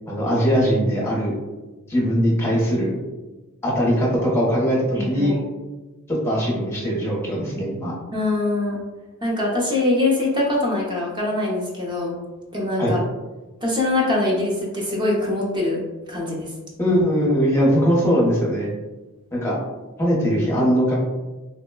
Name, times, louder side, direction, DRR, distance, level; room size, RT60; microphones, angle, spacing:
voice 1, 0.1-1.3 1.9-3.0 3.6-5.4 6.1-7.9 12.8-12.9 16.8-18.7 19.3-19.6 20.0-20.9, equal, 10° left, -5 dB, 0.8 m, -20 dB
voice 2, 4.9-5.4 8.1-8.8 9.2-12.2 12.5-13.0 13.6-15.8 16.1-16.5, left 2 dB, 20° right, -3 dB, 0.7 m, -23 dB
3.7 x 2.1 x 2.2 m, 1.2 s
head